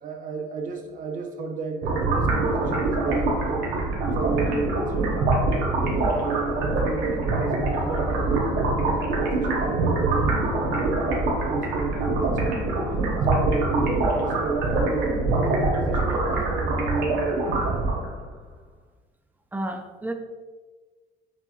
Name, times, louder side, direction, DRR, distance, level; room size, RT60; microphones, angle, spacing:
voice 1, 0.0-3.7 4.0-5.3 5.8-10.3 10.7-12.6 13.2-18.1, right 4 dB, 50° right, 3 dB, 0.7 m, -31 dB
sound 1, 1.8-18.2, right 2 dB, 80° right, 0.9 m, -24 dB
voice 2, 19.5-20.1, right 1 dB, 10° right, 6 dB, 0.4 m, -31 dB
5.9 x 2.9 x 2.4 m, 1.3 s
cardioid pair, 110°, 17 cm